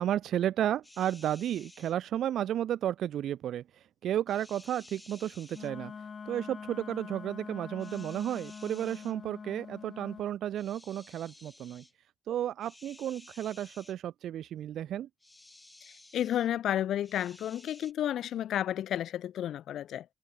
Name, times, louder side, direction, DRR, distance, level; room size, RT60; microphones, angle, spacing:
voice 1, 0.0-5.9 6.3-11.8 12.3-15.1, right 11 dB, 70° right, 0.9 m, -33 dB
sound 1, 0.8-2.0 4.3-5.7 7.8-9.2 10.6-11.9 12.6-14.0 15.2-16.5 17.0-17.9, left 2 dB, 10° left, 7.5 m, -55 dB
Wind instrument woodwind instrument, 5.5-10.3, left 6 dB, 40° left, 7.3 m, -44 dB
voice 2, 16.1-20.0, left 11 dB, 70° left, 1.8 m, -31 dB
cardioid pair, 115°, 0 cm